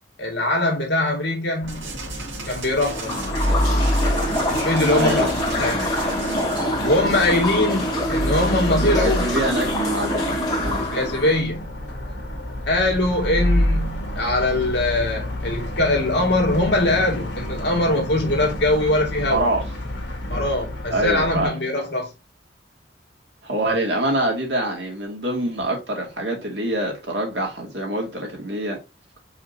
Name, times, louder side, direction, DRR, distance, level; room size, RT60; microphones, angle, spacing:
voice 1, 0.2-1.9 2.5-3.2 4.5-5.9 6.8-9.3 10.8-11.7 12.7-19.5 20.3-22.1, left 1 dB, 65° left, 2.1 m, -22 dB
sound 1, 1.6-21.5, equal, 85° left, 1.5 m, -28 dB
sound 2, 1.7-6.7, right 5 dB, 85° right, 2.0 m, -38 dB
sound 3, 2.7-11.4, equal, 20° left, 2.4 m, -25 dB
voice 2, 4.9-5.3 8.7-10.8 19.3-19.6 20.9-21.5 23.4-28.8, right 1 dB, 70° right, 2.2 m, -25 dB
4.9 x 3.8 x 2.8 m
head